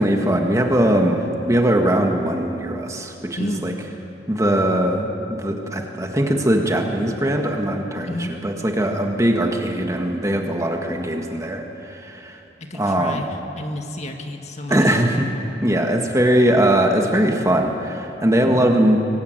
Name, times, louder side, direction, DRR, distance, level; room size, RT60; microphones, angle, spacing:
voice 1, 0.0-3.7 4.3-8.2 8.4-12.4 12.7-13.2 14.7-15.3 15.6-19.0, right 1 dB, 20° right, 3 dB, 1.6 m, -20 dB
voice 2, 3.4-3.7 8.1-8.4 12.6-15.0 18.4-18.6, left 1 dB, 40° left, 4 dB, 2.0 m, -31 dB
24.0 x 19.5 x 9.1 m, 3.0 s
head